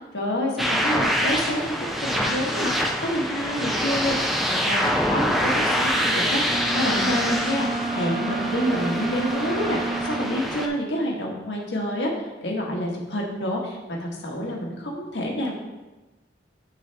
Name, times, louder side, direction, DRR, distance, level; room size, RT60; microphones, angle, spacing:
voice 1, 0.1-2.7 3.0-4.2 4.5-15.5, equal, 80° left, -1 dB, 1.5 m, -28 dB
sound 1, 0.6-10.7, equal, ahead, 0.5 m, -25 dB
Wind instrument woodwind instrument, 6.4-10.5, right 3 dB, 85° right, 0.8 m, -30 dB
9.7 x 4.0 x 3.4 m, 1.1 s
head